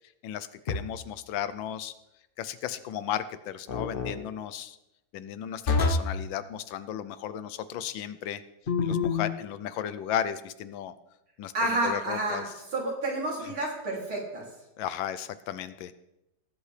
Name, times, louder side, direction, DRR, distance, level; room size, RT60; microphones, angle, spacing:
voice 1, 0.2-1.9 2.4-4.8 5.1-8.4 8.8-10.9 11.4-11.5 11.8-12.5 14.8-15.9, left 10 dB, 75° left, 13 dB, 1.3 m, -34 dB
sound 1, 0.7-1.2 3.7-4.2 5.7-6.2 8.7-9.4, left 4 dB, 55° left, 0.6 m, -27 dB
voice 2, 11.5-12.4 12.7-14.4, right 2 dB, 85° right, -3 dB, 3.9 m, -29 dB
18.5 x 8.2 x 3.3 m, 0.90 s
omnidirectional pair, 2.2 m